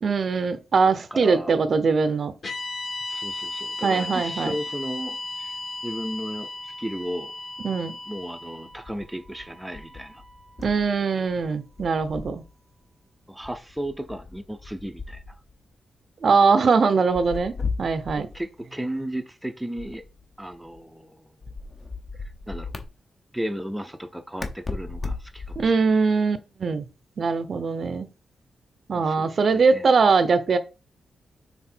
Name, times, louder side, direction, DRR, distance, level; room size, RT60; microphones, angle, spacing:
voice 1, 0.0-2.3 3.8-4.5 7.6-8.0 10.6-12.4 16.2-18.3 25.6-26.8 27.2-28.1 28.9-30.6, right 4 dB, 50° right, 0.6 m, -22 dB
voice 2, 1.1-1.6 3.1-7.3 8.1-10.2 13.3-15.2 18.2-20.0 20.4-21.3 22.2-22.7 23.3-25.8 28.9-29.9, right 1 dB, 5° right, 0.6 m, -34 dB
sound 1, 2.4-10.7, left 2 dB, 50° left, 2.4 m, -36 dB
sound 2, 8.7-11.0 11.3-12.5 13.4-15.6 17.1-18.4 19.8-20.8 21.4-22.9 24.4-25.8, left 4 dB, 35° left, 0.8 m, -36 dB
6.0 x 3.6 x 4.4 m
wide cardioid pair, 150°, 0 cm